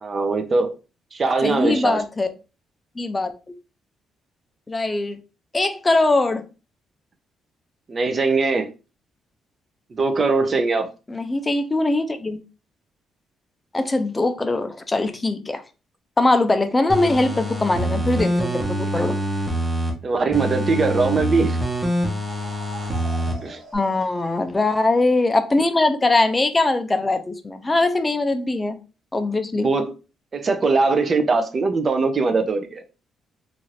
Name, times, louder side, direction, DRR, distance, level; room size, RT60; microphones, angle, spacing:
voice 1, 0.0-0.8 1.1-2.0 7.9-8.7 9.9-10.9 18.9-19.0 20.0-21.6 23.4-23.6 29.5-29.9 30.3-32.8, right 3 dB, 40° right, 0.5 m, -21 dB
voice 2, 1.4-2.3 3.0-3.3 4.7-5.2 5.5-6.5 11.1-12.4 13.7-15.6 16.2-19.2 23.7-28.8 29.1-29.7, left 2 dB, 20° left, 0.4 m, -21 dB
sound 1, 16.9-19.9 20.3-23.3 23.7-23.8, equal, 15° right, 0.8 m, -25 dB
sound 2, 21.5-25.0, equal, 80° right, 1.3 m, -43 dB
2.6 x 2.4 x 3.0 m
cardioid pair, 90°, 0 cm